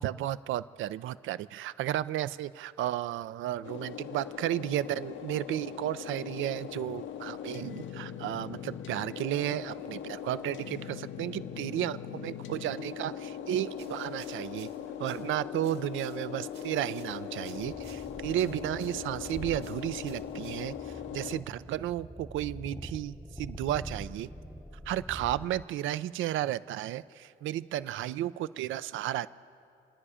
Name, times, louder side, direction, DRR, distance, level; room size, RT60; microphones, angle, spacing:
voice 1, 0.0-14.7 15.0-20.7 21.1-24.3 24.9-29.3, right 13 dB, 80° right, 16 dB, 0.5 m, -33 dB
sound 1, 3.6-21.4, left 9 dB, 75° left, 0.8 m, -40 dB
sound 2, 13.7-21.0, right 6 dB, 60° right, 1.8 m, -59 dB
sound 3, 17.5-25.6, equal, ahead, 0.7 m, -45 dB
28.5 x 9.9 x 5.0 m, 2.4 s
cardioid pair, 90°, 20 cm